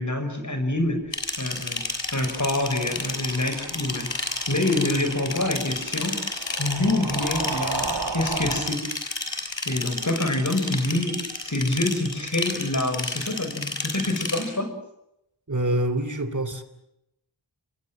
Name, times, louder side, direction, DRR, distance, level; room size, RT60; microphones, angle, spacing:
voice 1, 0.0-6.2 6.6-8.8 9.2-14.7, left 1 dB, 40° left, 7 dB, 6.0 m, -27 dB
sound 1, 1.1-14.4, left 3 dB, 85° left, 6.5 m, -31 dB
sound 2, 2.1-8.8, right 4 dB, 60° right, 2.1 m, -35 dB
voice 2, 15.5-16.6, right 1 dB, 40° right, 11 dB, 3.1 m, -25 dB
27.5 x 22.5 x 7.6 m, 0.84 s
wide cardioid pair, 45°, 44 cm